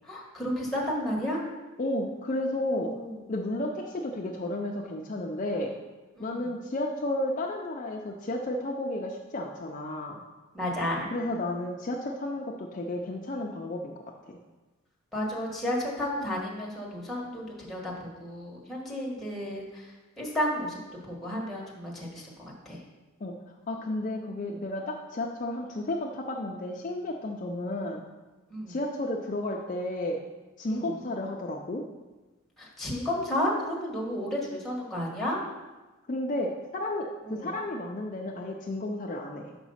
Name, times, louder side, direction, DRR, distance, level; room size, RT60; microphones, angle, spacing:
voice 1, 0.0-1.4 2.8-3.1 6.2-6.5 10.5-11.1 15.1-19.9 20.2-20.8 21.1-22.3 22.6-22.8 24.5-24.6 28.5-28.7 30.7-30.9 32.6-35.4 37.3-37.5, left 1 dB, ahead, -4 dB, 1.4 m, -32 dB
voice 2, 1.8-2.9 3.3-5.7 6.2-10.2 11.1-14.4 23.2-23.4 23.7-28.1 28.7-30.2 30.6-31.8 36.1-39.6, left 1 dB, 35° left, 0 dB, 0.5 m, -32 dB
6.0 x 5.0 x 5.5 m, 1.2 s
head